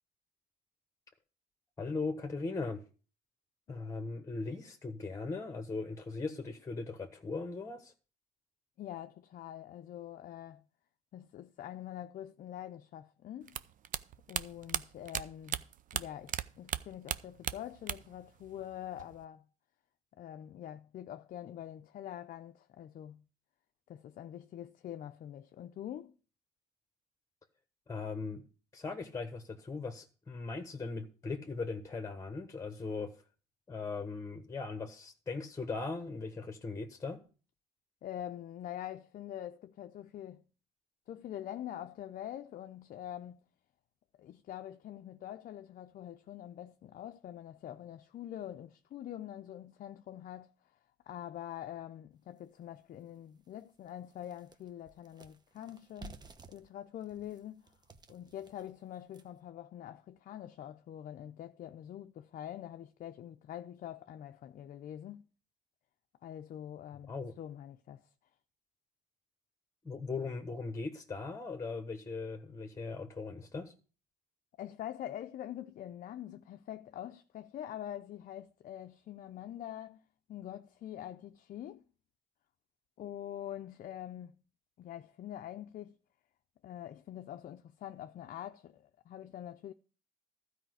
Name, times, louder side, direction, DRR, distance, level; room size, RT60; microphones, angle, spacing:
voice 1, 1.8-2.8 3.7-7.9 27.9-28.4 28.7-33.1 33.7-37.2 67.1-67.3 69.8-73.7, left 3 dB, 20° left, 1.2 m, -39 dB
voice 2, 8.8-10.6 11.1-13.6 14.3-15.7 15.9-19.5 20.2-23.2 23.9-26.1 38.0-40.4 41.1-43.4 44.2-50.8 51.1-56.2 56.5-57.6 58.1-65.3 66.2-68.0 74.6-80.0 80.3-81.8 83.0-84.4 84.8-86.0 86.6-89.7, left 11 dB, 55° left, 0.6 m, -45 dB
sound 1, 13.5-16.4 16.7-18.2 18.5-19.2, right 10 dB, 50° right, 0.6 m, -36 dB
sound 2, 52.4-52.5 53.0-53.1 53.4-59.5, right 3 dB, 25° right, 0.9 m, -55 dB
12.5 x 5.0 x 7.9 m
cardioid pair, 110°, 17 cm